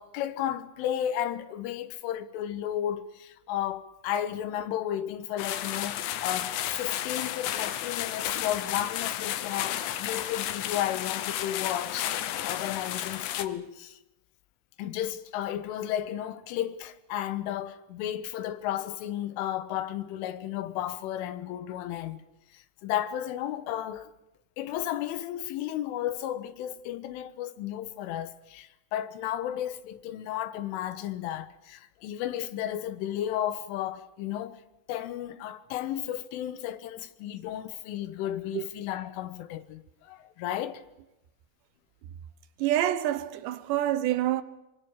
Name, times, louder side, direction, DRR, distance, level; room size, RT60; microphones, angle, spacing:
voice 1, 0.0-14.0 14.8-22.2 22.5-24.1 24.6-34.6 34.9-40.8, left 11 dB, 90° left, 3.8 m, -33 dB
sound 1, 5.4-13.5, left 12 dB, 70° left, 3.2 m, -32 dB
voice 2, 42.6-44.4, right 13 dB, 75° right, 3.0 m, -27 dB
24.5 x 24.0 x 7.3 m
omnidirectional pair, 5.5 m